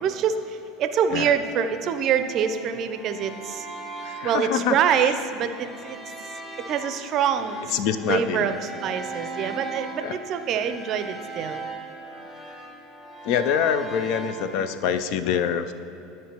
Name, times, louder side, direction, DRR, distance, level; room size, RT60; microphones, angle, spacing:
voice 1, 0.0-3.7 4.2-6.0 6.6-11.6, right 8 dB, 50° right, 9 dB, 0.5 m, -25 dB
sound 1, 1.1-14.6, right 3 dB, 30° left, 1.3 m, -39 dB
voice 2, 4.0-5.1 7.7-8.5 10.0-10.1 13.2-15.7, left 8 dB, 60° left, 11 dB, 0.4 m, -25 dB
12.5 x 4.6 x 2.9 m, 2.9 s
hypercardioid pair, 75°, 0 cm